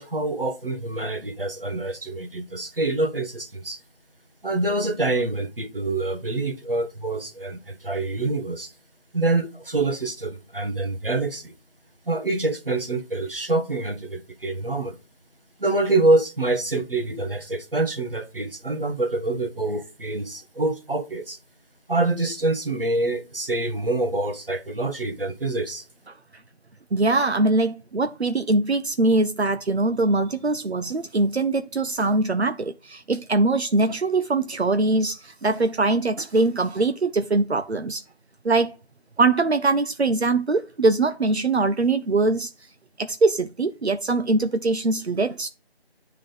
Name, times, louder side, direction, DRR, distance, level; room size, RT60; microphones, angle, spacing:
voice 1, 0.0-3.8 4.4-8.7 9.1-11.5 12.1-15.0 15.6-21.4 21.9-25.8, right 2 dB, 60° right, 1.2 m, -26 dB
voice 2, 26.9-38.0 38.4-38.7 39.2-42.7 43.0-45.5, right 3 dB, 80° right, 0.7 m, -22 dB
9.9 x 3.7 x 3.7 m
figure-of-eight pair, 175°, 32 cm